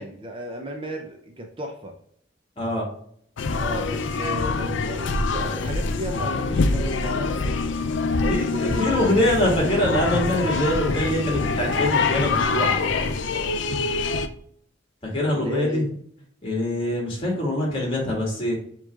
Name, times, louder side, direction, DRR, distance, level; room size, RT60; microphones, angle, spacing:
voice 1, 0.0-1.9 3.6-7.4 8.2-9.7 15.3-15.9, equal, 25° right, 2 dB, 0.5 m, -34 dB
voice 2, 2.6-2.9 8.3-12.8 15.0-15.9 16.4-18.6, left 1 dB, 30° left, -2 dB, 2.0 m, -24 dB
sound 1, 3.4-14.3, left 4 dB, 75° left, 0.5 m, -25 dB
7.1 x 3.0 x 2.4 m, 0.64 s
head